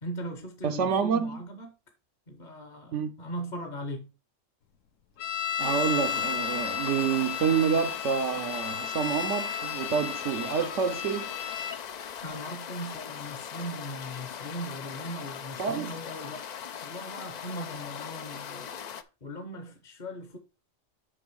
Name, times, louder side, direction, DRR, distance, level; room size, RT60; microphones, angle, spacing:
voice 1, 0.0-1.7 2.3-4.1 12.2-16.5 16.8-20.4, equal, 40° left, 0.9 m, -39 dB
voice 2, 0.6-1.4 2.9-3.1 5.6-11.3 15.6-15.9, right 7 dB, 75° right, 1.0 m, -28 dB
sound 1, 5.2-11.8, left 9 dB, 80° left, 1.1 m, -33 dB
sound 2, 5.6-19.0, left 8 dB, 65° left, 0.4 m, -40 dB
6.1 x 5.6 x 4.5 m
omnidirectional pair, 1.3 m